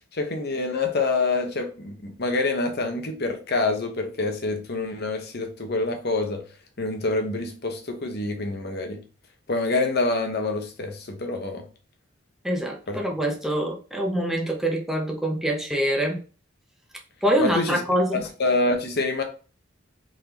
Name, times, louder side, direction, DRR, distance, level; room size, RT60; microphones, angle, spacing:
voice 1, 0.1-6.4 6.8-9.0 9.5-11.7 12.9-13.0 17.4-17.8 18.1-19.2, left 3 dB, 55° left, 0.9 m, -26 dB
voice 2, 12.4-16.2 17.2-18.2, right 1 dB, ahead, 0.7 m, -25 dB
3.9 x 3.5 x 2.9 m
head